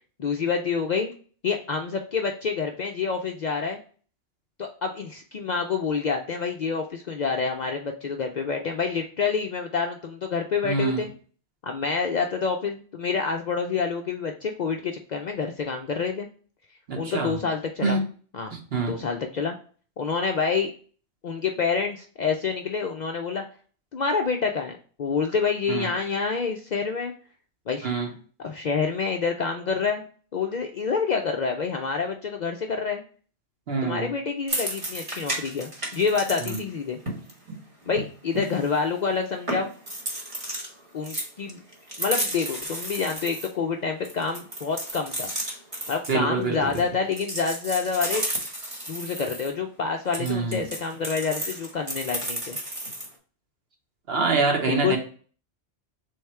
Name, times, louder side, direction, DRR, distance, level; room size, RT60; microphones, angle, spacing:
voice 1, 0.2-1.1 1.4-3.8 4.6-11.1 11.6-16.3 17.0-18.0 18.3-18.5 18.9-19.5 20.0-20.7 21.2-23.4 23.9-27.1 27.7-27.9 28.4-30.0 30.3-33.0 33.8-37.0 37.9-39.7 40.9-41.6 42.0-45.3 45.9-48.2 48.9-52.6 54.7-55.0, left 5 dB, 55° left, 3 dB, 0.5 m, -27 dB
voice 2, 10.6-11.0 16.9-17.4 17.8-18.0 18.5-19.0 25.7-25.9 27.8-28.1 33.7-34.1 36.4-36.6 46.1-46.8 50.2-50.7 54.1-55.0, right 4 dB, 65° right, 2 dB, 1.2 m, -26 dB
sound 1, 34.5-36.6 36.9-38.9 39.2-39.3 39.5-40.7 41.0-43.5 44.0-46.9 47.1-49.5 50.1-53.1, right 1 dB, 30° right, 1.1 m, -33 dB
3.5 x 3.4 x 4.3 m, 0.42 s
omnidirectional pair, 1.1 m